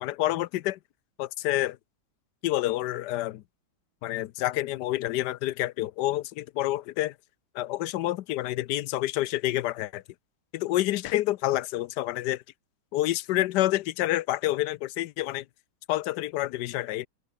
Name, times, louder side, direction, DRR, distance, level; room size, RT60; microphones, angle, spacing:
voice 1, 0.0-0.8 1.2-1.8 2.4-3.4 4.0-7.1 7.5-10.0 10.5-12.4 12.9-15.4 15.9-17.1, left 15 dB, 70° left, 1.1 m, -28 dB
open air
omnidirectional pair, 2.2 m